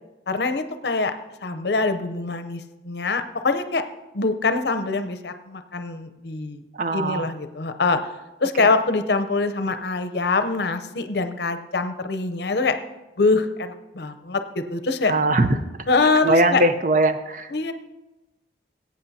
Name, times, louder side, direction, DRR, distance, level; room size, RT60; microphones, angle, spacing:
voice 1, 0.3-1.1 1.4-3.8 4.1-6.6 6.9-8.1 8.4-12.8 13.2-15.1 15.9-16.6 17.5-17.7, left 3 dB, 65° left, 9 dB, 0.7 m, -24 dB
voice 2, 6.7-7.3 8.6-8.7 15.0-15.9 16.2-17.5, right 1 dB, 45° right, 9 dB, 0.6 m, -21 dB
20.5 x 8.7 x 2.7 m, 1.0 s
head